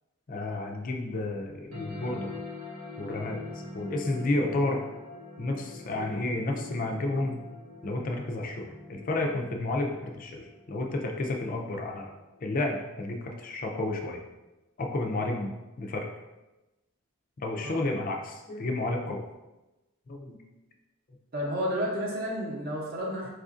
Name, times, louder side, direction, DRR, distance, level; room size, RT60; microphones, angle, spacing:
voice 1, 0.3-2.3 3.0-3.4 3.7-4.8 5.4-7.4 7.8-12.1 12.4-14.2 14.8-15.5 15.8-16.1 17.4-19.2 20.1-20.4, left 2 dB, 40° left, 1 dB, 0.4 m, -31 dB
sound 1, 1.7-12.7, left 3 dB, 90° right, 0.8 m, -44 dB
voice 2, 21.3-23.3, equal, 45° right, -3 dB, 0.7 m, -31 dB
4.7 x 2.4 x 2.4 m, 1.0 s
head